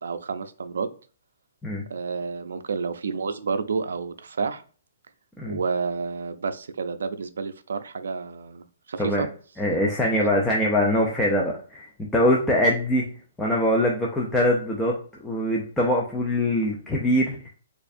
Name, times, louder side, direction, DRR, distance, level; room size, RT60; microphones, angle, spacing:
voice 1, 0.0-0.9 1.9-4.6 5.5-9.3 10.2-10.3, right 5 dB, 85° right, 10 dB, 0.4 m, -30 dB
voice 2, 9.6-13.0 13.4-17.5, left 1 dB, 5° left, -3 dB, 0.3 m, -23 dB
4.3 x 2.4 x 2.6 m, 0.40 s
hypercardioid pair, 175°, 0 cm